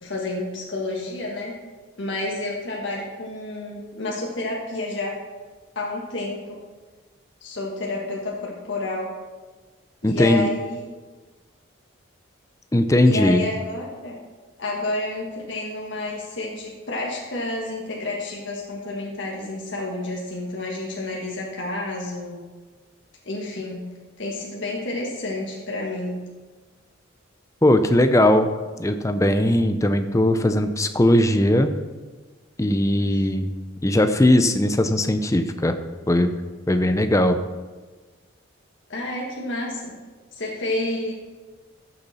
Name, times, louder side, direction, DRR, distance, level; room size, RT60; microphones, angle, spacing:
voice 1, 0.0-1.6 2.0-5.2 5.7-6.6 7.4-9.1 10.0-10.8 13.0-14.2 14.6-22.4 23.2-26.3 33.1-33.3 38.9-40.0 40.3-41.1, left 2 dB, 60° left, -3 dB, 1.6 m, -30 dB
voice 2, 10.0-10.5 12.7-13.5 27.6-28.5 28.8-31.7 32.6-33.5 33.8-35.8 36.1-36.3 36.7-37.4, left 1 dB, 15° left, 8 dB, 0.5 m, -19 dB
13.5 x 6.9 x 4.2 m, 1.3 s
head